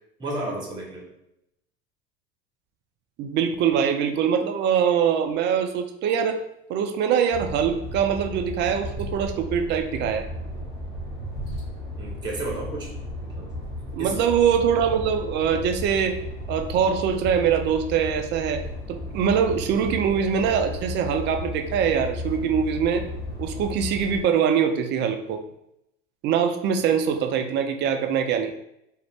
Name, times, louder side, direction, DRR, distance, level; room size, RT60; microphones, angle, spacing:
voice 1, 0.2-1.1 12.0-12.9 13.3-13.5 14.0-14.3, right 2 dB, 15° right, 0 dB, 0.8 m, -32 dB
voice 2, 3.2-6.4 6.7-10.3 13.9-16.1 16.5-18.6 18.9-23.1 23.4-25.4 26.2-28.5, right 7 dB, 35° right, 6 dB, 0.4 m, -23 dB
sound 1, 7.3-24.2, left 1 dB, 10° left, 1.4 m, -34 dB
2.5 x 2.1 x 3.2 m, 0.80 s
hypercardioid pair, 80°, 32 cm